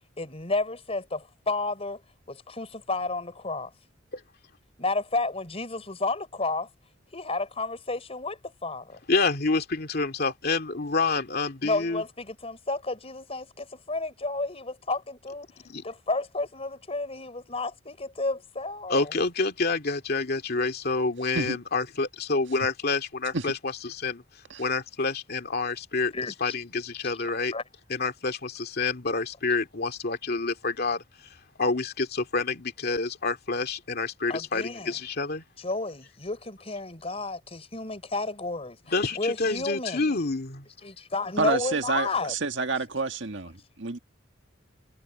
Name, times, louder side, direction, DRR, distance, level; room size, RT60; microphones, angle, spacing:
voice 1, 0.2-2.0 2.3-3.7 4.8-6.7 7.1-9.0 11.6-15.5 15.8-19.1 26.1-26.5 27.5-27.6 34.3-34.9 35.6-38.8 39.1-40.1 40.8-42.3, left 3 dB, 30° left, 4.5 m, -31 dB
voice 2, 9.1-12.0 15.6-15.8 18.9-24.2 24.6-26.1 26.4-27.5 27.9-31.0 31.6-35.4 38.9-40.7, left 3 dB, 55° left, 2.3 m, -28 dB
voice 3, 41.4-44.0, right 3 dB, 65° right, 1.8 m, -29 dB
head